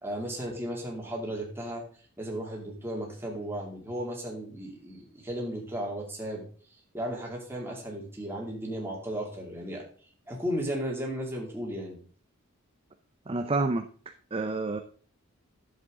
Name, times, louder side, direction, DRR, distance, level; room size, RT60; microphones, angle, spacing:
voice 1, 0.0-1.8 2.2-6.5 6.9-9.8 10.3-12.0, equal, 10° right, -2 dB, 2.5 m, -35 dB
voice 2, 13.3-13.9 14.3-14.8, right 3 dB, 25° right, 6 dB, 0.5 m, -28 dB
11.0 x 7.5 x 3.7 m, 0.43 s
head